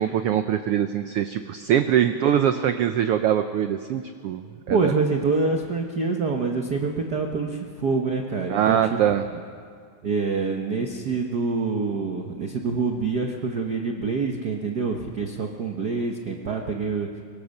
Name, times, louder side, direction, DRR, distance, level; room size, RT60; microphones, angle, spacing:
voice 1, 0.0-4.9 8.5-9.2, right 10 dB, 85° right, 9 dB, 1.3 m, -23 dB
voice 2, 4.7-9.0 9.3-9.4 10.0-17.1, right 4 dB, 65° right, 2 dB, 0.9 m, -26 dB
23.5 x 22.0 x 6.6 m, 2.1 s
omnidirectional pair, 3.5 m